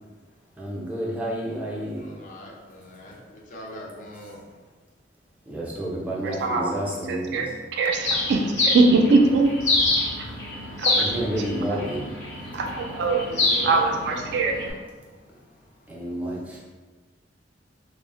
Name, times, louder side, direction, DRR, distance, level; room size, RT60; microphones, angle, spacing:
voice 1, 0.6-2.0 5.5-7.5 11.0-12.1 15.9-16.6, right 1 dB, 10° right, -5 dB, 0.5 m, -30 dB
voice 2, 1.7-4.7 7.3-7.4 13.3-16.1, left 1 dB, 45° left, -2 dB, 0.5 m, -42 dB
voice 3, 6.2-6.8 7.1-9.5 10.2-10.3 10.8-11.1 12.5-13.2 13.6-14.5, right 3 dB, 65° right, 3 dB, 0.3 m, -22 dB
Bird, 8.0-14.7, left 2 dB, 80° left, 0.8 m, -27 dB
2.0 x 2.0 x 3.7 m, 1.3 s
head